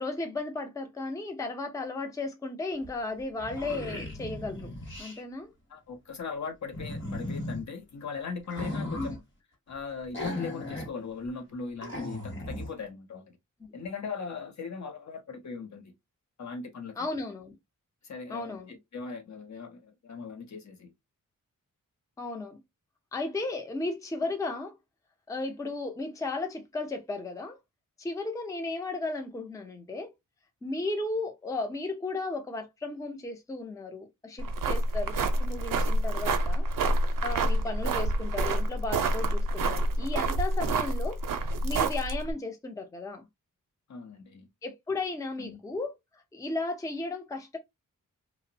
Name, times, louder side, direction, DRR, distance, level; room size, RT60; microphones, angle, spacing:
voice 1, 0.0-4.7 5.0-5.5 9.0-9.2 17.0-17.6 18.3-18.8 22.2-22.6 23.1-24.8 25.3-27.6 28.0-30.1 30.6-36.7 37.2-41.2 41.6-43.3 44.6-45.9 46.3-47.6, left 2 dB, 10° left, 0.4 m, -35 dB
sound 1, 2.8-2.9 3.2-5.2 6.7-7.6 8.4-9.2 10.1-10.9 11.2-11.3 11.8-12.7, left 1 dB, 35° left, 1.1 m, -36 dB
voice 2, 5.7-9.2 9.7-13.4 13.7-15.9 16.4-17.1 18.0-20.9 40.6-40.7 43.9-44.5 45.4-45.6, left 5 dB, 55° left, 0.6 m, -39 dB
sound 2, 34.4-42.3, right 2 dB, 75° right, 0.5 m, -28 dB
2.8 x 2.0 x 2.5 m
wide cardioid pair, 150°, 33 cm